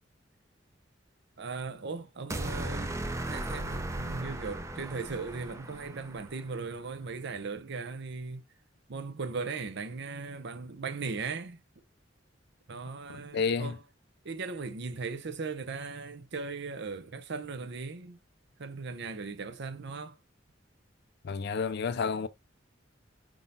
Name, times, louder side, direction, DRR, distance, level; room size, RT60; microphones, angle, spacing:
voice 1, 1.4-3.0 3.2-8.4 8.9-11.6 12.7-13.8 14.2-18.2 18.6-20.2, right 4 dB, 65° right, 0.7 m, -38 dB
sound 1, 2.3-6.6, right 1 dB, 15° right, 0.5 m, -36 dB
voice 2, 13.3-13.8 21.2-22.3, left 5 dB, 60° left, 0.4 m, -30 dB
5.1 x 3.7 x 2.7 m
head